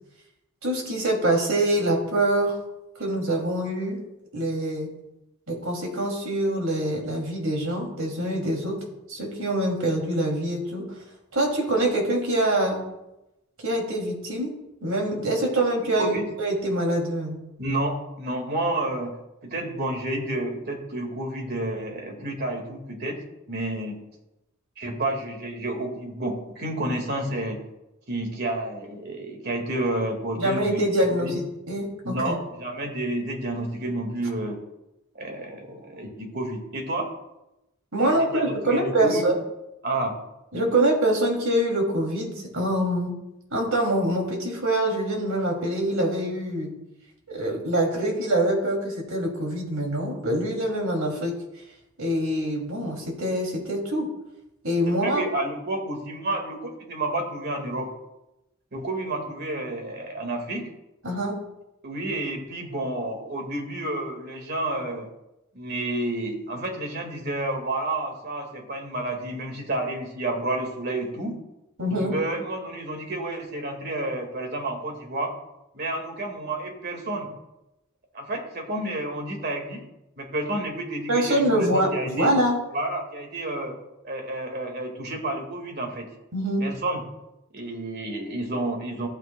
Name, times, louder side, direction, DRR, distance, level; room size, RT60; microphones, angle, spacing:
voice 1, 0.6-2.6 3.0-4.0 4.3-4.9 5.5-8.8 9.1-10.8 11.3-12.8 13.6-14.5 14.8-17.4 30.4-32.3 37.9-39.4 40.5-43.1 43.5-46.7 47.3-51.3 52.0-54.1 54.6-55.2 61.0-61.4 71.8-72.1 81.1-82.5 86.3-86.6, right 1 dB, 80° right, 1 dB, 2.7 m, -25 dB
voice 2, 16.0-16.3 17.6-19.1 19.4-23.2 23.5-24.0 24.8-27.6 28.1-31.4 32.0-34.6 35.2-37.1 38.0-39.3 39.8-40.1 54.9-57.9 58.7-60.7 61.8-65.1 65.5-71.4 71.9-75.3 75.7-77.3 78.1-79.8 80.2-82.3 82.7-83.8 84.0-86.1 86.6-87.0 87.5-89.1, right 1 dB, 50° right, 3 dB, 1.9 m, -30 dB
14.0 x 8.8 x 2.3 m, 0.93 s
head